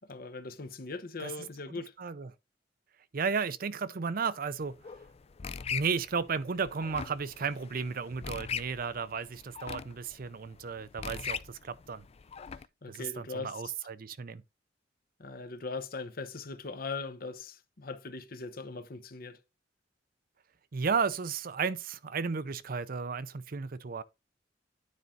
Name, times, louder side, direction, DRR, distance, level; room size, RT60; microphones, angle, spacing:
voice 1, 0.0-1.9 12.8-13.7 15.2-19.4, left 3 dB, 55° left, 0.9 m, -40 dB
voice 2, 1.7-2.3 3.1-4.8 5.7-12.0 12.9-14.4 20.7-24.0, right 5 dB, 50° right, 0.6 m, -34 dB
sound 1, 4.6-12.7, left 7 dB, 35° left, 0.4 m, -41 dB
9.6 x 4.4 x 3.8 m
head